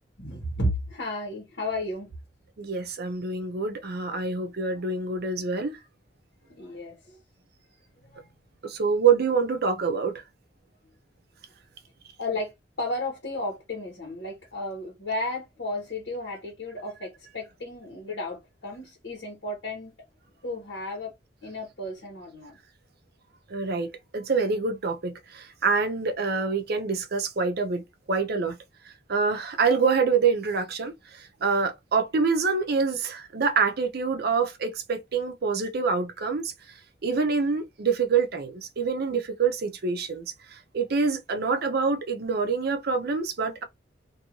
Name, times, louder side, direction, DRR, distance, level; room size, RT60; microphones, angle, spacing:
voice 1, 0.2-2.1 6.6-7.2 8.0-8.3 12.2-19.9 20.4-21.1 21.4-22.6, left 1 dB, 70° left, 1.3 m, -33 dB
voice 2, 2.6-5.8 8.6-10.2 23.5-28.6 29.1-36.5 37.0-43.6, right 5 dB, 60° right, 0.6 m, -26 dB
2.6 x 2.5 x 3.0 m
head